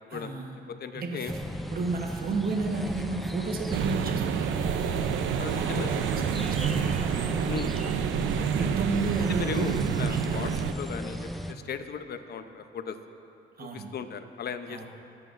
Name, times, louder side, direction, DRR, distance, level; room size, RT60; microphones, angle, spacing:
voice 1, 0.1-0.5 0.9-1.3 1.7-4.6 5.5-6.7 8.5-10.3 13.6-13.9 14.7-14.9, right 4 dB, 50° right, 1 dB, 1.1 m, -32 dB
voice 2, 0.7-1.4 5.4-6.1 7.5-7.7 8.4-8.5 9.3-13.0 13.6-14.9, left 6 dB, 55° left, 9 dB, 0.7 m, -37 dB
sound 1, 1.3-11.5, equal, ahead, 0.5 m, -35 dB
sound 2, 3.7-10.7, right 8 dB, 75° right, 0.5 m, -29 dB
19.5 x 7.8 x 2.5 m, 2.6 s
cardioid pair, 90°, 20 cm